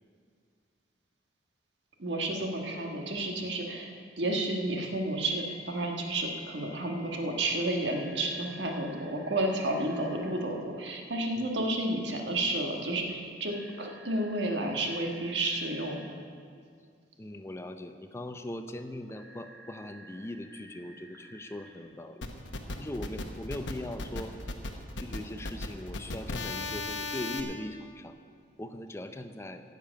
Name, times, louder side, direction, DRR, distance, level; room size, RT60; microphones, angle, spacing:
voice 1, 2.0-3.9 4.2-16.1 22.7-22.8, right 1 dB, 70° right, 2 dB, 1.5 m, -31 dB
Telephone, 2.3-3.0 4.8-10.4 13.5-16.0 19.1-21.7, equal, 85° right, 2.9 m, -54 dB
voice 2, 17.2-22.2 22.8-24.3 25.0-28.2 28.6-29.6, left 1 dB, 15° left, 8 dB, 0.5 m, -40 dB
sound 1, 22.2-27.4, left 2 dB, 80° left, 1.0 m, -36 dB
10.5 x 6.8 x 9.0 m, 2.2 s
head